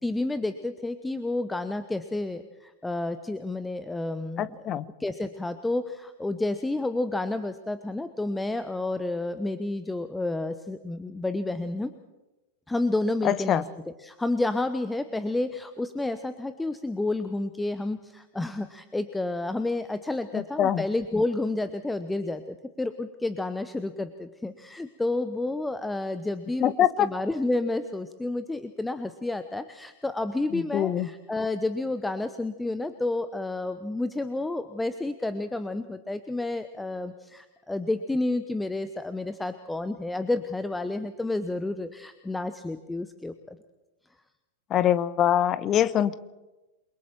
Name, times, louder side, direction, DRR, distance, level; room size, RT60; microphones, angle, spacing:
voice 1, 0.0-4.6 5.0-11.9 12.7-13.6 14.0-26.7 27.0-43.6, left 2 dB, 5° left, 11 dB, 1.0 m, -30 dB
voice 2, 4.4-4.8 13.2-13.6 20.3-20.8 26.6-27.1 30.5-31.1 44.7-46.1, left 10 dB, 30° left, 16 dB, 1.0 m, -24 dB
28.5 x 23.0 x 4.5 m, 1.1 s
figure-of-eight pair, 90°, 0 cm